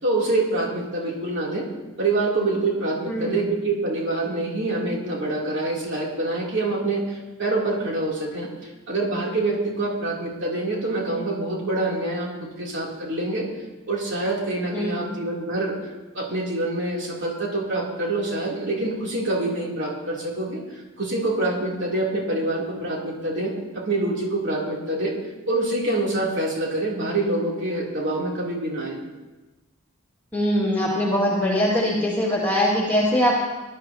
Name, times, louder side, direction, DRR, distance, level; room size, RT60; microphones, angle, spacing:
voice 1, 0.0-1.7 2.0-13.5 13.8-15.7 16.1-25.1 25.5-29.0, right 2 dB, 55° right, -3 dB, 3.0 m, -26 dB
voice 2, 3.1-3.5 14.7-15.1 30.3-33.3, equal, 10° left, -5 dB, 1.9 m, -22 dB
19.5 x 12.0 x 2.8 m, 1.1 s
head